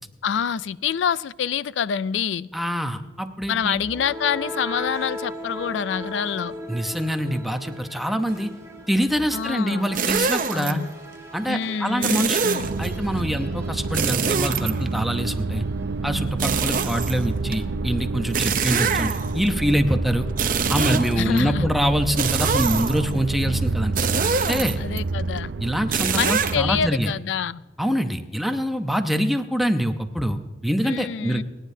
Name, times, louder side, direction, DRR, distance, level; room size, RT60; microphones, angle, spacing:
voice 1, 0.2-2.5 3.5-6.5 9.3-9.9 10.5-10.9 11.5-12.7 21.2-21.7 24.8-25.5 26.1-27.6 30.8-31.4, left 7 dB, 80° left, 19 dB, 0.4 m, -26 dB
voice 2, 2.5-3.7 6.7-8.5 8.9-10.8 11.3-12.5 12.8-15.6 16.0-20.3 20.7-23.9 24.5-24.8 25.6-27.1 27.8-31.4, equal, ahead, 6 dB, 0.8 m, -25 dB
sound 1, 3.6-15.5, equal, 20° right, 2.3 m, -38 dB
sound 2, 9.9-10.7 12.0-12.9 13.9-15.2 16.4-17.5 18.3-19.5 20.3-21.4 22.2-23.1 24.0-25.0 25.9-26.5, right 6 dB, 50° right, 0.7 m, -24 dB
sound 3, 12.6-26.9, right 3 dB, 85° right, 0.5 m, -28 dB
30.0 x 10.0 x 2.7 m, 1.2 s
head